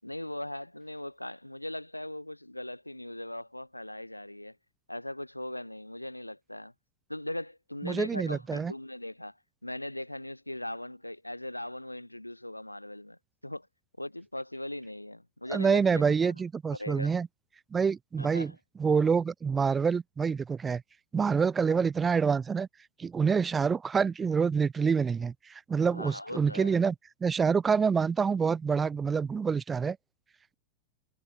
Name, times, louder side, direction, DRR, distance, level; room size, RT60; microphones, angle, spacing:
voice 1, 0.0-4.6 4.9-6.7 7.1-9.4 9.6-13.7 14.0-16.3 16.7-17.1 18.2-18.6 25.9-26.7, left 1 dB, 85° left, 6.8 m, -39 dB
voice 2, 7.8-8.7 15.5-17.3 17.7-18.5 18.8-20.8 21.1-22.7 23.0-26.9 27.2-30.0, right 6 dB, 15° right, 3.5 m, -27 dB
figure-of-eight pair, 90°, 0 cm